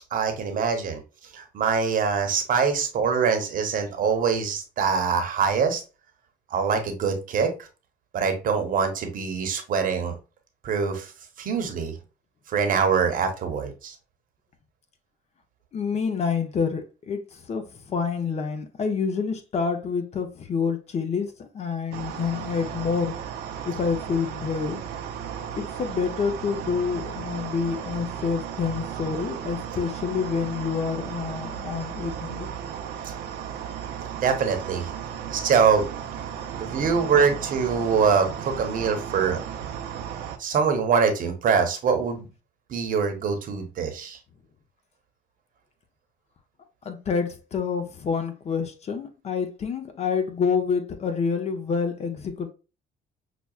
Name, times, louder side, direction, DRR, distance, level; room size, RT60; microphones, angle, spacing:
voice 1, 0.1-1.0 1.3-5.8 6.5-7.7 8.1-10.1 10.6-11.1 11.4-11.9 12.5-13.9 34.2-34.9 35.3-35.9 36.6-39.4 40.4-42.3 42.7-44.2, right 6 dB, 55° right, 0.9 m, -24 dB
voice 2, 15.7-23.1 23.6-24.8 25.6-32.5 36.6-36.8 46.8-52.5, left 5 dB, 40° left, 0.7 m, -28 dB
sound 1, 21.9-40.4, right 8 dB, 70° right, 0.6 m, -35 dB
5.8 x 2.3 x 2.3 m
cardioid pair, 110°, 17 cm